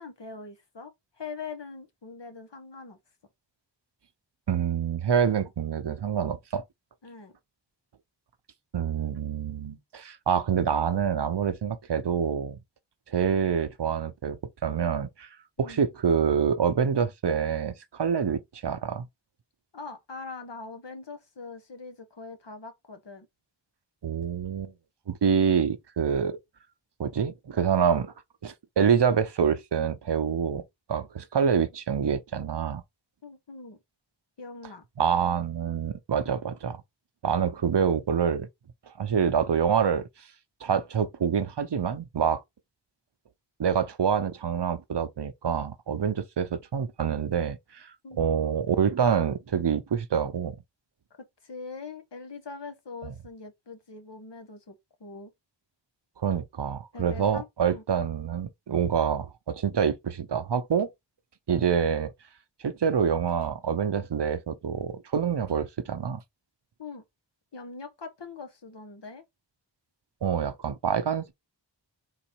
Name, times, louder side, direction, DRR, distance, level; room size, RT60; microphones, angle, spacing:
voice 1, 0.0-3.0 7.0-7.4 15.6-15.8 19.7-23.3 33.2-33.8 34.4-34.8 48.0-48.3 51.2-55.3 56.9-57.8 66.8-67.0 67.5-69.2, left 4 dB, 65° left, 1.2 m, -42 dB
voice 2, 4.5-6.6 8.7-12.6 13.1-14.4 14.6-15.3 15.6-19.1 24.0-24.7 25.1-26.4 27.0-28.1 28.4-30.6 30.9-32.8 35.0-36.8 37.2-38.5 38.9-40.0 40.6-42.4 43.6-50.6 56.2-60.9 61.5-62.1 62.6-66.2 70.2-71.3, right 7 dB, 65° right, 0.7 m, -26 dB
3.9 x 2.5 x 4.5 m
wide cardioid pair, 45°, 45 cm